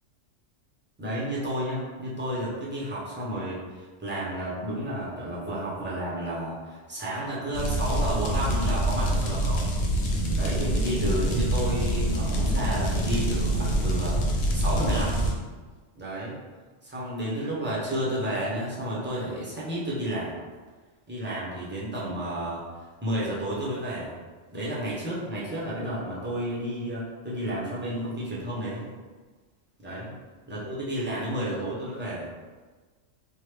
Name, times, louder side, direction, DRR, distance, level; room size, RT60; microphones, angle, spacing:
voice 1, 1.0-9.7 10.3-15.3 16.0-16.4 16.8-20.4 21.1-22.6 23.0-24.2 24.5-28.9 29.8-30.1 30.5-32.3, right 1 dB, 15° right, -7 dB, 0.5 m, -31 dB
sound 1, 7.5-15.3, right 1 dB, 80° left, 1.0 m, -25 dB
3.1 x 2.2 x 3.2 m, 1.4 s
omnidirectional pair, 1.3 m